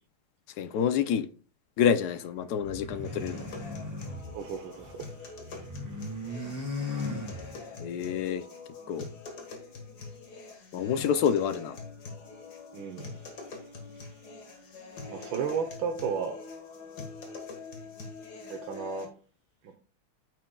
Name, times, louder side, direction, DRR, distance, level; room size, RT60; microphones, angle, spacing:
voice 1, 0.6-1.3 1.8-3.5 7.8-8.5 8.9-9.1 10.7-11.8, left 8 dB, 70° left, 0.9 m, -27 dB
sound 1, 2.6-5.0 5.3-7.9, left 2 dB, 10° right, 1.7 m, -38 dB
sound 2, 3.0-19.1, left 4 dB, 50° left, 2.0 m, -44 dB
voice 2, 4.3-5.6 12.7-13.3 15.1-16.4 18.5-19.1 19.6-19.7, right 6 dB, 70° right, 1.6 m, -34 dB
9.3 x 9.2 x 2.3 m
omnidirectional pair, 2.4 m